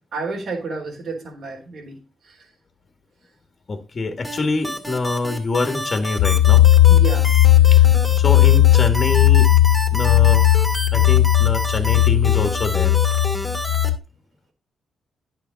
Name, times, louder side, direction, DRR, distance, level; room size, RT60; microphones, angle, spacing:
voice 1, 0.1-2.4 6.9-7.2 7.6-7.8, right 3 dB, 65° right, 2 dB, 3.9 m, -31 dB
voice 2, 3.7-6.7 7.7-9.5 9.9-13.0, left 3 dB, 40° left, 6 dB, 1.8 m, -25 dB
sound 1, 4.2-13.9, left 1 dB, 5° left, 2.3 m, -29 dB
sound 2, 6.2-14.0, left 13 dB, 90° left, 0.4 m, -15 dB
10.0 x 6.9 x 4.1 m, 0.33 s
cardioid pair, 75°, 0 cm